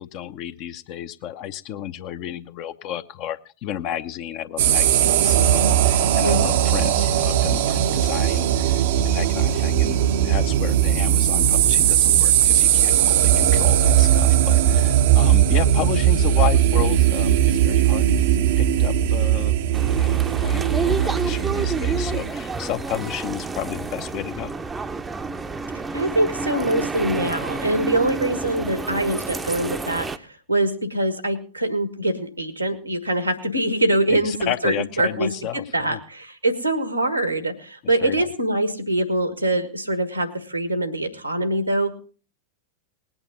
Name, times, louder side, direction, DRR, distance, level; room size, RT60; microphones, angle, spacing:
voice 1, 0.0-18.3 18.6-24.5 34.1-36.0 37.8-38.3, left 11 dB, 40° left, 10 dB, 0.7 m, -32 dB
sound 1, 4.6-22.3, right 10 dB, 55° right, 0.7 m, -19 dB
sound 2, 19.7-30.2, right 4 dB, 15° right, 0.6 m, -29 dB
voice 2, 25.9-35.3 35.7-41.9, right 1 dB, 90° right, 10 dB, 1.4 m, -24 dB
19.5 x 8.9 x 3.9 m, 0.39 s
figure-of-eight pair, 90°, 0 cm